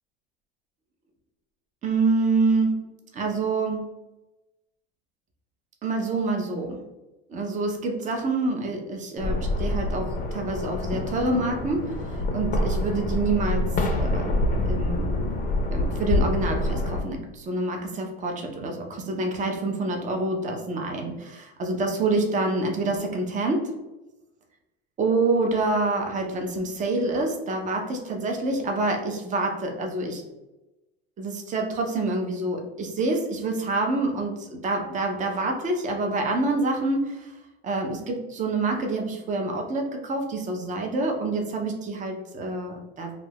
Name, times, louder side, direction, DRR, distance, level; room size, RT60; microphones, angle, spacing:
voice 1, 1.8-2.7 3.1-3.9 5.8-6.8 7.3-14.3 14.7-15.1 15.7-23.7 25.0-30.2 31.2-37.3 37.6-43.1, right 2 dB, 25° right, 2 dB, 0.6 m, -27 dB
sound 1, 9.2-17.0, left 1 dB, 30° left, 0.5 m, -26 dB
2.4 x 2.3 x 3.3 m, 1.0 s
supercardioid pair, 100°, 30 cm